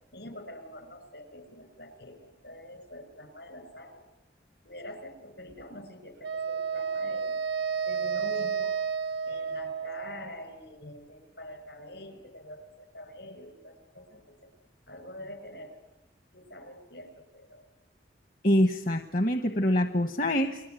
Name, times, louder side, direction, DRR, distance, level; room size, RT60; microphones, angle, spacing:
voice 1, 0.1-4.0 4.6-7.4 7.9-8.8 9.2-14.5 14.9-15.8 16.3-17.7, left 1 dB, 70° left, 9 dB, 5.4 m, -45 dB
Wind instrument woodwind instrument, 6.2-10.4, right 6 dB, 80° right, 1.0 m, -31 dB
voice 2, 18.4-20.6, equal, 50° left, 7 dB, 1.2 m, -25 dB
29.5 x 21.5 x 9.1 m, 0.96 s
head